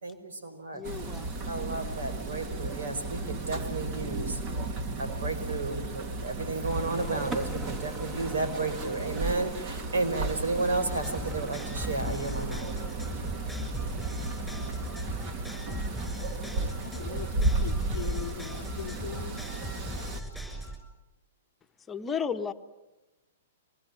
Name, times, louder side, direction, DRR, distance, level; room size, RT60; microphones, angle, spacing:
voice 1, 0.0-0.9 1.5-12.8, right 3 dB, 80° right, 5.1 m, -33 dB
voice 2, 0.7-1.5 21.9-22.5, left 6 dB, 15° left, 1.4 m, -33 dB
sound 1, 0.8-20.2, right 3 dB, 40° right, 3.0 m, -34 dB
sound 2, 6.3-13.3, right 1 dB, 25° right, 3.0 m, -43 dB
sound 3, 10.9-20.8, left 1 dB, ahead, 6.9 m, -39 dB
voice 3, 16.8-19.4, left 10 dB, 70° left, 0.8 m, -40 dB
25.5 x 20.5 x 9.4 m
hypercardioid pair, 130°, 0 cm